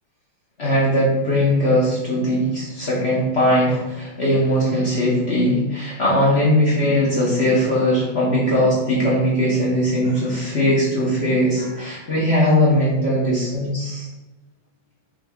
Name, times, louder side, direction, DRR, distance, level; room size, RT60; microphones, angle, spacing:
voice 1, 0.6-14.1, equal, 50° left, -7 dB, 0.8 m, -19 dB
5.8 x 3.3 x 2.3 m, 1.0 s
omnidirectional pair, 2.3 m